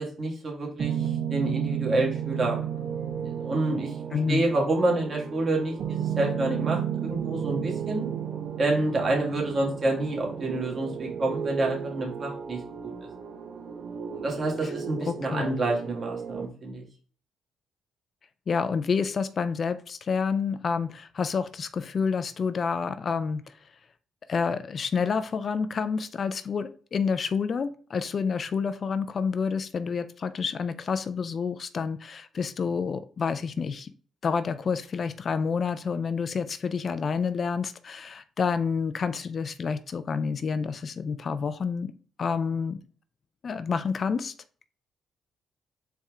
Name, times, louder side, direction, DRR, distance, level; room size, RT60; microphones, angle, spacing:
voice 1, 0.0-8.1 8.6-13.1 14.1-16.8, right 2 dB, 40° right, -1 dB, 2.0 m, -28 dB
sound 1, 0.8-16.5, right 8 dB, 65° right, 0.7 m, -33 dB
voice 2, 4.1-4.4 14.6-14.7 15.1-15.5 18.5-23.5 24.3-33.9 34.2-41.9 42.2-42.8 43.4-44.3, left 5 dB, 45° left, 12 dB, 0.4 m, -29 dB
4.3 x 3.4 x 3.6 m, 0.42 s
cardioid pair, 90°, 0 cm